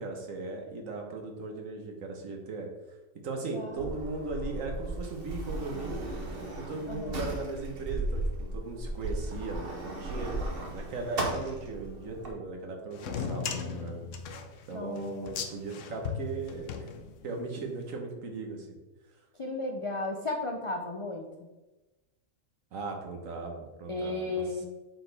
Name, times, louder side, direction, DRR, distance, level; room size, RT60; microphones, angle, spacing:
voice 1, 0.0-2.7 3.2-6.0 6.6-8.2 8.5-14.0 14.7-16.9 17.2-18.8 22.7-24.4, right 3 dB, 75° right, 2 dB, 1.5 m, -38 dB
voice 2, 3.5-3.9 6.9-7.2 14.7-15.3 19.4-21.3 23.9-24.6, left 2 dB, 55° left, 2 dB, 0.3 m, -34 dB
Sliding door, 3.7-12.3, right 1 dB, 50° right, 1.2 m, -36 dB
sound 1, 12.9-17.5, left 6 dB, 70° left, 1.0 m, -37 dB
7.8 x 4.6 x 3.4 m, 1.1 s
omnidirectional pair, 1.4 m